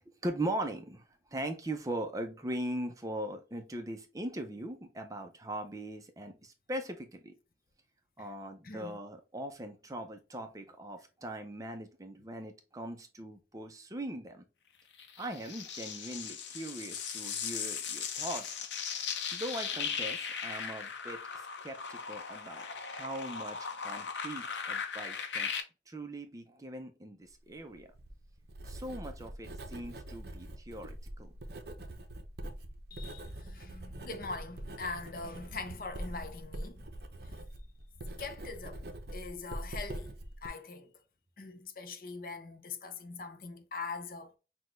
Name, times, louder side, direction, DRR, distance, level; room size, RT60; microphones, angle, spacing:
voice 1, 0.0-7.3 8.2-14.4 15.2-18.5 19.3-25.5 25.9-27.9 28.6-31.3, right 1 dB, 20° right, 0.5 m, -40 dB
voice 2, 8.6-9.0 18.4-18.5 32.9-36.8 38.2-38.9 39.1-40.1 40.4-40.9 41.4-44.4, left 4 dB, 50° left, 0.6 m, -42 dB
sound 1, 15.0-25.6, left 6 dB, 90° left, 0.8 m, -38 dB
Writing, 27.7-40.5, right 1 dB, 60° right, 0.7 m, -44 dB
6.0 x 2.3 x 3.1 m
head